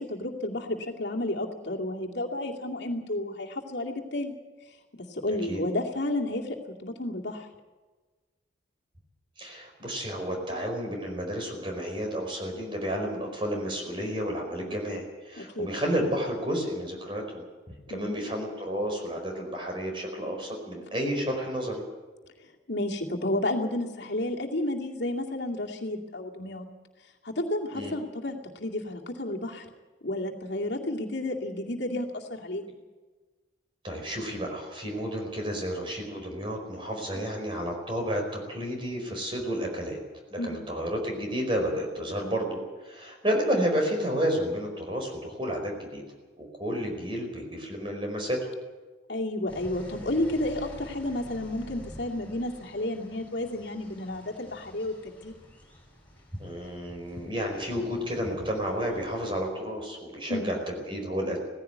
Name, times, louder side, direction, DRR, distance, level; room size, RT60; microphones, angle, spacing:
voice 1, 0.0-4.3 4.9-6.6 6.8-7.5 15.4-15.7 17.9-18.1 22.7-26.6 27.2-29.7 30.0-32.8 37.1-37.3 40.4-40.6 49.1-55.3 60.3-60.4, left 1 dB, 60° left, 0 dB, 2.4 m, -31 dB
voice 2, 9.4-17.4 17.9-21.8 27.7-27.9 33.8-40.0 40.3-46.0 46.4-48.5 56.4-61.4, equal, 25° right, 2 dB, 4.9 m, -31 dB
sound 1, 49.5-59.5, equal, 10° left, 7.3 m, -49 dB
18.0 x 15.5 x 9.4 m, 1.3 s
head